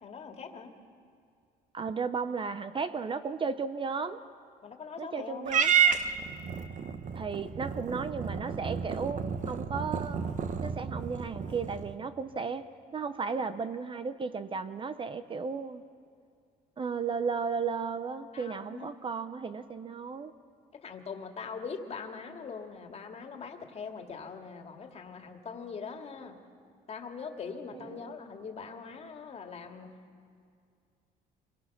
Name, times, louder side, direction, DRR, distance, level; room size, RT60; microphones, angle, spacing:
voice 1, 0.0-0.7 4.6-5.5 11.4-11.6 18.3-19.0 20.7-26.4 26.9-30.0, left 5 dB, 40° left, 4 dB, 2.2 m, -42 dB
voice 2, 1.7-4.2 5.0-5.7 7.1-10.2 10.6-12.6 12.9-15.8 16.8-20.3 27.7-28.1, right 5 dB, 30° right, 11 dB, 0.8 m, -34 dB
Purr / Meow, 5.4-11.9, right 7 dB, 45° right, 1.2 m, -30 dB
25.5 x 21.0 x 6.1 m, 2.3 s
cardioid pair, 110°, 17 cm